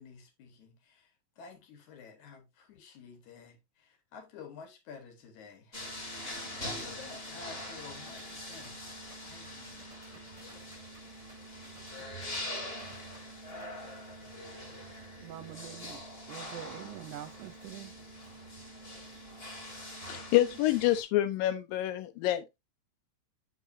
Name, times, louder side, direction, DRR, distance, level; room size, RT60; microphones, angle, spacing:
voice 1, 0.0-5.8 6.4-8.9 9.2-11.0 11.2-11.4, left 5 dB, 65° left, 2.6 m, -51 dB
sound 1, 5.7-21.0, left 1 dB, 25° left, 1.5 m, -43 dB
sound 2, 6.3-13.6, right 2 dB, 20° right, 0.8 m, -57 dB
voice 2, 15.2-18.0 19.3-19.7, right 13 dB, 80° right, 1.9 m, -46 dB
voice 3, 20.1-22.6, left 14 dB, 85° left, 2.6 m, -27 dB
8.2 x 5.6 x 2.6 m
omnidirectional pair, 4.0 m